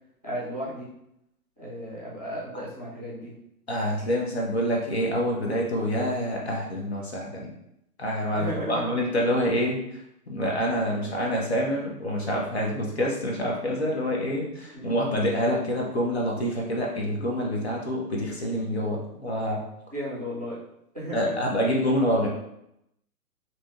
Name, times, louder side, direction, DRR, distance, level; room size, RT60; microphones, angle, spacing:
voice 1, 0.2-0.9 1.6-3.3 8.4-9.0 14.7-15.0 19.9-20.6 20.9-21.5, equal, 30° right, -8 dB, 0.4 m, -34 dB
voice 2, 3.7-7.5 8.0-9.8 10.3-19.6 21.1-22.3, equal, 45° left, -2 dB, 0.5 m, -27 dB
3.2 x 2.7 x 2.3 m, 0.79 s
hypercardioid pair, 170°, 47 cm